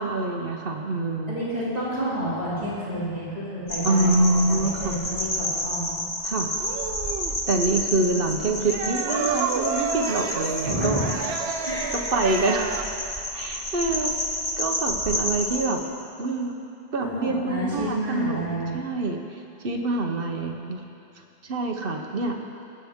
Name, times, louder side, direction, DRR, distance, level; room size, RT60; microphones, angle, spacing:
voice 1, 0.0-1.4 3.8-5.0 6.2-6.5 7.5-11.0 12.1-12.7 13.3-14.1 14.6-15.8 16.2-16.6 16.9-18.5 18.7-19.2 19.6-20.8 21.4-22.4, right 2 dB, 60° right, 3 dB, 1.1 m, -25 dB
voice 2, 1.3-6.0 8.2-8.4 10.6-11.1 11.6-11.9 17.0-18.8, equal, 40° right, -10 dB, 2.6 m, -30 dB
sound 1, 3.7-15.6, left 1 dB, 60° left, 1.9 m, -30 dB
sound 2, 6.6-7.4 8.6-12.8, right 6 dB, 75° right, 0.9 m, -30 dB
21.5 x 7.8 x 3.6 m, 2.6 s
omnidirectional pair, 1.1 m